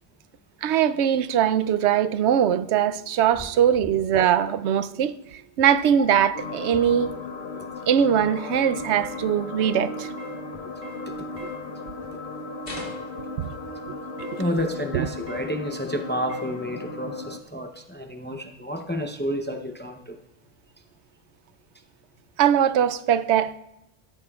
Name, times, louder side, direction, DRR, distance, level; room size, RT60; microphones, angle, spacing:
voice 1, 0.6-7.1 7.9-10.1 11.4-11.5 13.4-13.5 14.3-14.5 14.9-15.1 22.4-23.6, right 9 dB, 85° right, 0.9 m, -21 dB
sound 1, 6.3-17.4, left 3 dB, 75° left, 1.2 m, -36 dB
sound 2, 9.0-9.2 9.6-9.8 10.2-10.4 10.8-11.1 11.4-11.6 12.7-13.0 14.2-14.4 15.3-15.5 16.3-16.5, left 1 dB, 40° right, 2.1 m, -39 dB
voice 2, 11.1-11.4 14.4-20.2, equal, 10° left, 0.5 m, -30 dB
sound 3, 12.6-13.3 16.4-16.5, left 1 dB, 55° left, 2.3 m, -38 dB
15.5 x 13.5 x 2.4 m
omnidirectional pair, 1.1 m